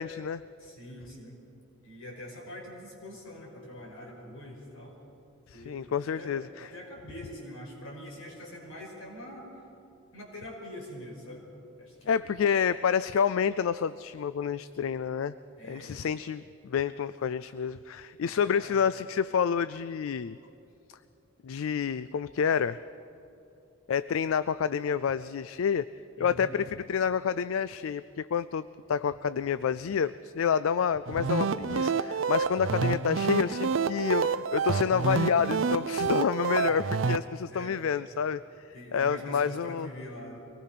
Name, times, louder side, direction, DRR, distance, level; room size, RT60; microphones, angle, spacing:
voice 1, 0.0-0.4 5.5-6.7 12.1-15.4 15.7-20.4 21.4-22.8 23.9-25.9 26.2-38.4 38.9-39.9, left 7 dB, 75° left, 15 dB, 0.4 m, -28 dB
voice 2, 0.6-1.4 1.8-5.0 5.5-9.5 10.1-11.5 11.8-12.2 15.6-16.1 18.2-18.8 26.2-26.5 36.7-36.8 37.5-37.8 38.7-40.4, left 1 dB, 90° left, -1 dB, 5.6 m, -44 dB
sound 1, 31.1-37.2, right 5 dB, 60° right, 0.5 m, -28 dB
24.0 x 19.5 x 5.8 m, 2.8 s
head